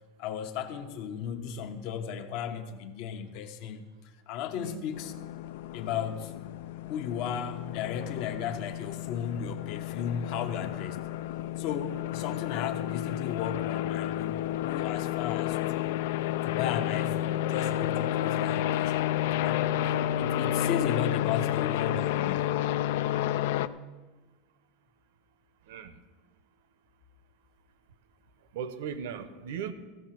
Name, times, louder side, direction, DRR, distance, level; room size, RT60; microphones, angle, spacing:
voice 1, 0.2-3.8 4.3-5.1 5.7-6.3 6.9-11.1 11.6-16.0 16.4-19.0 19.4-19.9 20.2-22.6, left 8 dB, 50° left, 8 dB, 0.9 m, -35 dB
voice 2, 4.5-4.9 25.7-26.0 28.5-29.7, right 7 dB, 80° right, 13 dB, 0.9 m, -37 dB
sound 1, 4.9-23.7, left 12 dB, 70° left, 0.4 m, -31 dB
14.5 x 6.4 x 7.6 m, 1.3 s
supercardioid pair, 170°, 0 cm